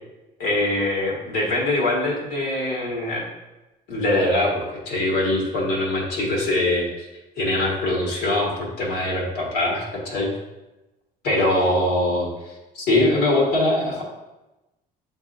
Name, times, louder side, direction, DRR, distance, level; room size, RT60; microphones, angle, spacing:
voice 1, 0.4-3.3 3.9-7.1 7.4-10.3 11.2-12.3 12.7-14.0, left 1 dB, 80° left, -3 dB, 1.4 m, -22 dB
7.5 x 2.7 x 2.5 m, 1.0 s
cardioid pair, 110°, 17 cm